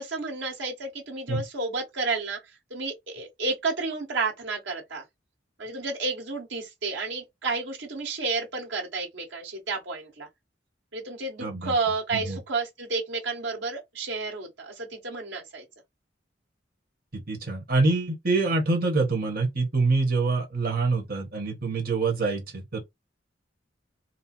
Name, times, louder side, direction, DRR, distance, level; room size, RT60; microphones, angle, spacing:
voice 1, 0.0-2.4 2.7-5.0 5.6-10.3 10.9-15.7, right 3 dB, 90° right, 1.8 m, -31 dB
voice 2, 11.4-11.7 12.1-12.4 17.1-22.8, right 3 dB, 55° right, 1.5 m, -25 dB
4.4 x 2.3 x 4.4 m
head